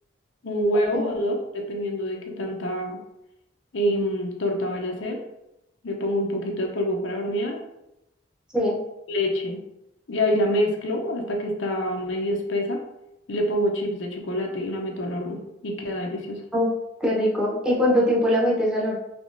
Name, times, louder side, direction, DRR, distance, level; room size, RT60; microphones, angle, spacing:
voice 1, 0.4-3.0 3.7-5.2 5.8-7.6 9.1-9.6 10.1-12.8 13.3-16.4, equal, 85° left, 1 dB, 0.6 m, -26 dB
voice 2, 17.0-19.0, equal, 5° right, -5 dB, 0.8 m, -22 dB
3.5 x 2.9 x 2.6 m, 0.87 s
head